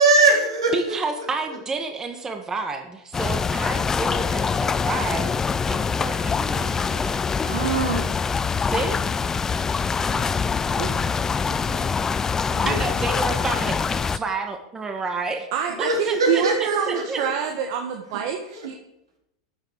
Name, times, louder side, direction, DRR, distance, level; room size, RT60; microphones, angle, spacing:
voice 1, 0.0-1.6 3.6-4.3 7.4-8.1 11.4-12.0 12.5-12.8 13.2-13.4 15.7-17.3 18.5-18.7, right 3 dB, 90° right, 0 dB, 3.9 m, -24 dB
voice 2, 0.7-5.3 5.7-7.2 8.6-9.0 12.6-15.5 15.8-17.2, right 3 dB, 20° right, 5 dB, 1.7 m, -30 dB
sound 1, 3.1-14.2, left 5 dB, 20° left, 0.5 m, -24 dB
voice 3, 10.6-11.2 15.5-18.8, right 8 dB, 60° right, 3 dB, 1.5 m, -27 dB
13.0 x 6.8 x 4.8 m, 0.85 s
hypercardioid pair, 105°, 3 cm